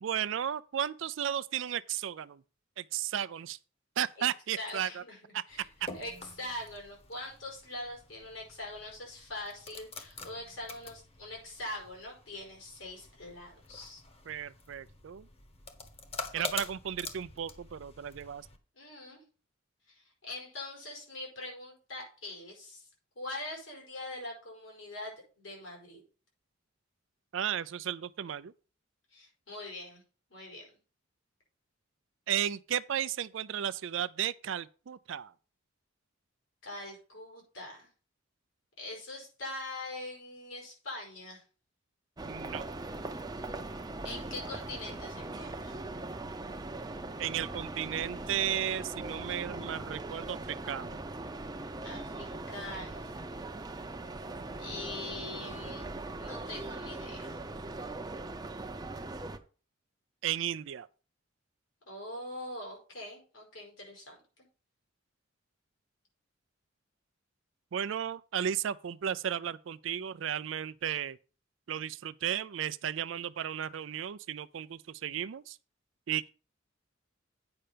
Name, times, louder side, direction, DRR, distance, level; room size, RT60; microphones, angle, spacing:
voice 1, 0.0-2.4 2.8-3.6 4.0-5.0 5.3-5.4 5.8-5.9 14.3-15.3 16.3-18.5 27.3-28.5 32.3-35.3 42.3-42.7 47.2-50.4 50.6-51.0 60.2-60.9 67.7-71.2 71.7-75.6 76.1-76.3, right 9 dB, 70° right, 0.4 m, -34 dB
voice 2, 4.6-5.6 5.9-14.0 16.3-16.4 18.7-19.2 19.9-22.8 23.1-26.0 29.1-30.0 30.3-30.8 36.6-37.9 38.8-41.4 44.0-45.7 51.8-53.2 54.6-55.9 56.2-57.3 61.8-64.2, left 2 dB, 80° left, 4.9 m, -43 dB
sound 1, 5.5-18.6, left 3 dB, 30° left, 1.1 m, -46 dB
sound 2, 42.2-59.4, right 2 dB, 20° right, 0.6 m, -40 dB
8.9 x 5.6 x 5.0 m
head